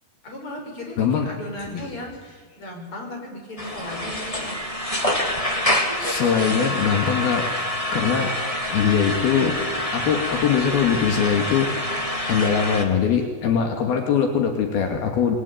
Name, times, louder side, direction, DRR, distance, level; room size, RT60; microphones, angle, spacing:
voice 1, 0.2-4.7, left 1 dB, 35° left, 1 dB, 7.0 m, -36 dB
voice 2, 1.0-1.3 1.7-1.9 6.0-7.5 7.9-8.3 8.7-9.6 9.9-15.4, left 7 dB, 80° left, 3 dB, 4.3 m, -22 dB
sound 1, 3.6-12.8, left 1 dB, 10° left, 1.9 m, -26 dB
27.0 x 22.0 x 9.5 m, 1.4 s
omnidirectional pair, 4.3 m